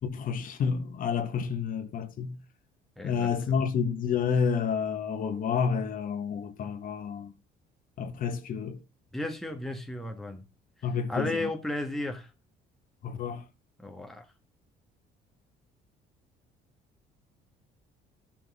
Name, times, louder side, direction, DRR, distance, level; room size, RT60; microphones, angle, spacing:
voice 1, 0.0-2.4 3.0-7.3 8.0-8.8 10.8-11.5 13.0-13.4, left 6 dB, 55° left, 1.6 m, -29 dB
voice 2, 3.0-3.5 9.1-10.4 11.1-12.3 13.8-14.3, left 1 dB, ahead, 1.5 m, -34 dB
12.0 x 5.9 x 3.7 m
cardioid pair, 110°, 17 cm